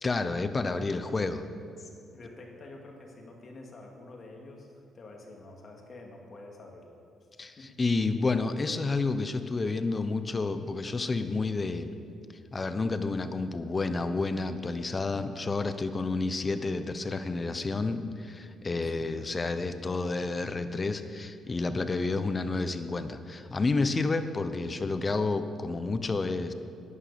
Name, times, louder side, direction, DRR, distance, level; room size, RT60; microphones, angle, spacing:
voice 1, 0.0-1.4 7.4-11.9 12.5-26.5, left 3 dB, 30° left, 10 dB, 0.9 m, -30 dB
voice 2, 1.8-6.9 7.6-7.7 18.8-19.1, left 2 dB, 45° left, 1 dB, 2.3 m, -48 dB
11.0 x 9.9 x 7.0 m, 2.5 s
cardioid pair, 90°, 0 cm